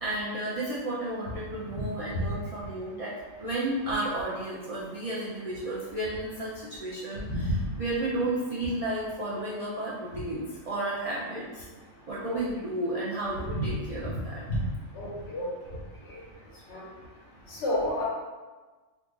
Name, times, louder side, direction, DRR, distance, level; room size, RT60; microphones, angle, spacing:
voice 1, 0.0-3.1 3.4-7.5 7.8-11.7 12.1-14.4, right 1 dB, 65° right, -7 dB, 0.3 m, -32 dB
voice 2, 14.9-15.5 16.7-16.8 17.5-18.1, equal, 60° left, -5 dB, 1.2 m, -30 dB
2.7 x 2.4 x 3.6 m, 1.3 s
omnidirectional pair, 1.3 m